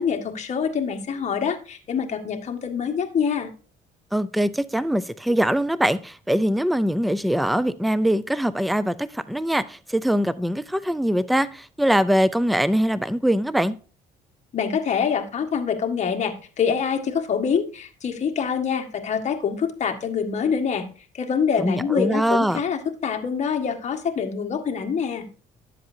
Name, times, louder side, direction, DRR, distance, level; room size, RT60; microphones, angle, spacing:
voice 1, 0.0-3.5 14.5-20.9 21.1-25.3, left 6 dB, 45° left, 1.6 m, -25 dB
voice 2, 4.1-13.8 21.6-22.6, equal, ahead, 0.4 m, -22 dB
11.0 x 7.6 x 2.7 m
cardioid pair, 110°, 17 cm